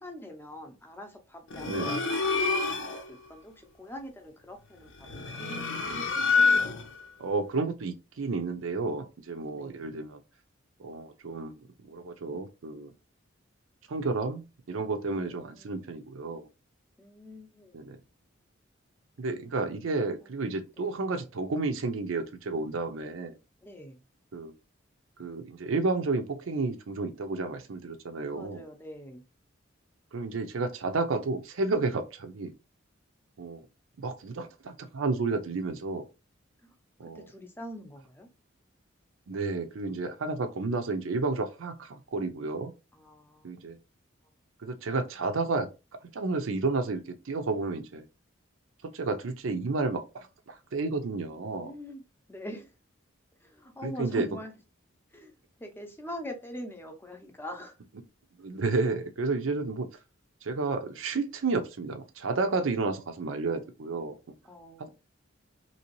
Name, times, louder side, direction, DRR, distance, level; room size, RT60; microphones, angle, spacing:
voice 1, 0.0-6.0 9.5-9.9 15.2-15.6 17.0-17.9 20.8-20.9 23.6-24.0 28.3-29.2 36.6-36.7 37.1-38.3 42.9-43.7 51.6-52.0 52.3-52.7 53.4-54.5 55.1-55.3 55.6-57.7 64.4-64.9, equal, 10° left, 0.6 m, -43 dB
sound 1, 1.5-3.1 5.0-7.0, left 4 dB, 75° left, 0.6 m, -27 dB
voice 2, 1.6-2.0 7.2-10.2 10.8-12.9 13.9-16.5 17.7-18.0 19.2-23.4 24.3-24.5 25.2-28.6 30.1-32.5 33.4-33.6 34.0-36.1 37.0-37.3 39.3-42.7 43.4-43.8 44.6-45.7 46.1-48.0 48.8-51.7 53.8-54.3 58.4-59.9 60.4-64.2, right 3 dB, 80° right, 0.5 m, -31 dB
2.9 x 2.8 x 2.9 m
head